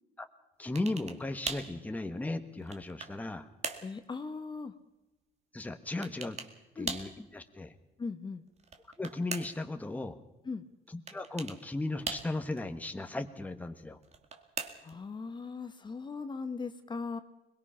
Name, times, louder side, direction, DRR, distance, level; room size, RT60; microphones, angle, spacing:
voice 1, 0.6-3.5 5.5-6.4 6.7-7.7 9.0-10.2 10.9-14.0, left 2 dB, 10° left, 7 dB, 1.4 m, -36 dB
sound 1, 0.8-1.2 1.5-1.7 2.4-3.2 3.6-3.9 6.0-6.5 6.9-7.2 8.6-9.7 11.1-11.6 12.1-12.6 14.0-15.0, right 5 dB, 40° right, 2.1 m, -39 dB
voice 2, 3.8-4.7 6.8-6.9 8.0-8.4 10.4-10.6 14.8-17.2, left 4 dB, 25° left, 9 dB, 1.3 m, -39 dB
22.0 x 21.5 x 5.8 m, 0.94 s
cardioid pair, 110°, 17 cm